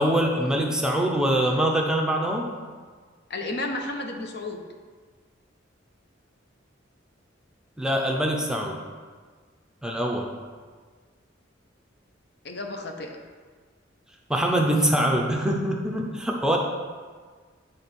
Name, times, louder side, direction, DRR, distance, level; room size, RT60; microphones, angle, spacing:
voice 1, 0.0-2.5 7.8-8.8 9.8-10.3 14.3-16.6, right 1 dB, 5° right, 0 dB, 0.5 m, -24 dB
voice 2, 3.3-4.6 12.4-13.1, left 2 dB, 60° left, 3 dB, 0.7 m, -32 dB
8.5 x 3.7 x 4.2 m, 1.6 s
head